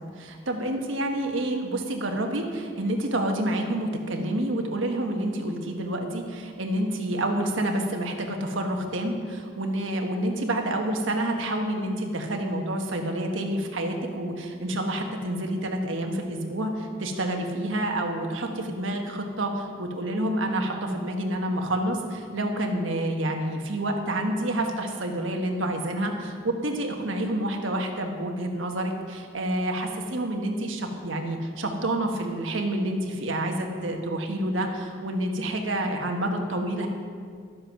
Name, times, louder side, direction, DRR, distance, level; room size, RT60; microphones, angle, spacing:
voice 1, 0.0-36.9, right 1 dB, 90° right, 3 dB, 1.4 m, -28 dB
12.5 x 7.8 x 5.8 m, 2.1 s
head